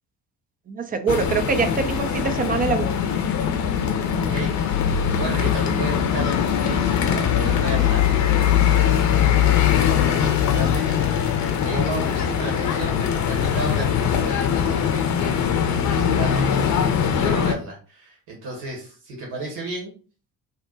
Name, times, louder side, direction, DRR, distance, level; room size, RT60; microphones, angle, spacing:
voice 1, 0.7-2.9, right 5 dB, 20° right, 0.5 m, -24 dB
sound 1, 1.1-17.5, left 8 dB, 45° left, 0.6 m, -21 dB
voice 2, 4.1-9.2 9.9-19.9, right 2 dB, 65° right, 1.1 m, -33 dB
2.6 x 2.1 x 3.8 m
figure-of-eight pair, 50°, 42 cm